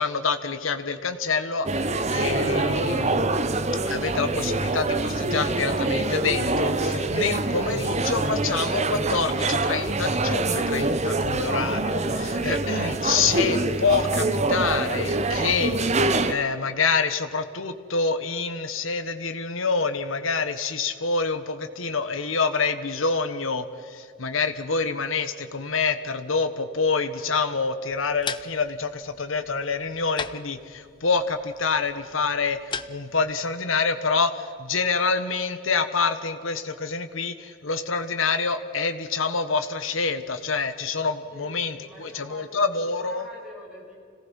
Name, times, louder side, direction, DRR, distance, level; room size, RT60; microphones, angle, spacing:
voice 1, 0.0-1.7 2.1-3.2 3.9-32.6 32.9-43.2, left 4 dB, 75° left, 9 dB, 1.4 m, -27 dB
sound 1, 1.7-16.3, right 2 dB, 35° right, 0.9 m, -25 dB
sound 2, 27.9-33.3, left 5 dB, 20° left, 0.6 m, -39 dB
voice 2, 41.3-44.0, left 1 dB, 5° right, -5 dB, 7.2 m, -47 dB
26.5 x 18.0 x 5.5 m, 2.3 s
head